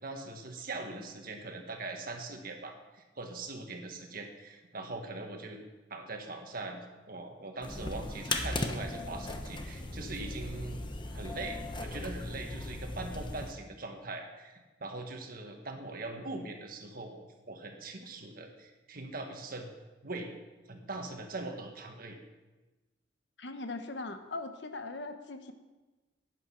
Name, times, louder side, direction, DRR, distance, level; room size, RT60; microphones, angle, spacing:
voice 1, 0.0-5.6 5.9-10.8 11.1-19.7 20.0-20.3 20.7-22.2, right 2 dB, 50° right, 4 dB, 1.6 m, -41 dB
sound 1, 7.6-13.5, left 2 dB, 25° left, 1.0 m, -37 dB
voice 2, 23.4-25.5, left 2 dB, 70° left, 8 dB, 1.0 m, -40 dB
11.0 x 9.2 x 5.8 m, 1.2 s
head